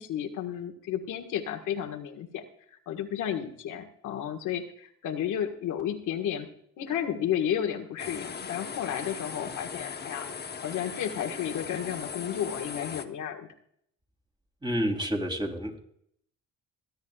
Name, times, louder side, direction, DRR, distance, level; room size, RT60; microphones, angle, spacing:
voice 1, 0.0-2.4 2.7-6.5 6.8-10.3 10.6-13.5, left 9 dB, 85° left, 2 dB, 1.6 m, -32 dB
sound 1, 8.0-13.1, left 6 dB, 35° left, 1.0 m, -39 dB
voice 2, 14.6-15.8, equal, 15° right, 2 dB, 3.2 m, -29 dB
23.5 x 9.6 x 2.3 m, 0.68 s
cardioid pair, 90°, 30 cm